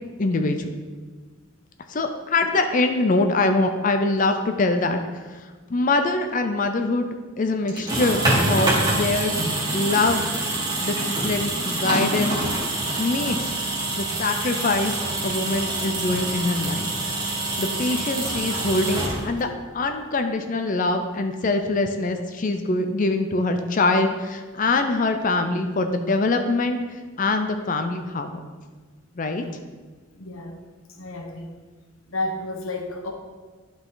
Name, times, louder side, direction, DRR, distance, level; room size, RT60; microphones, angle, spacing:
voice 1, 0.2-0.8 1.9-5.4 5.7-7.1 7.4-8.2 8.5-9.3 9.7-10.3 10.8-11.0 11.2-12.4 13.0-13.5 13.9-15.0 15.2-16.9 17.6-19.5 19.7-28.4 29.2-29.4, left 2 dB, 40° left, 6 dB, 0.5 m, -23 dB
sound 1, 7.7-19.6, right 2 dB, 20° right, 1.4 m, -26 dB
voice 2, 30.1-30.6 30.9-31.5 32.1-33.1, left 2 dB, 75° left, 2 dB, 1.1 m, -32 dB
11.5 x 4.0 x 3.9 m, 1.4 s
head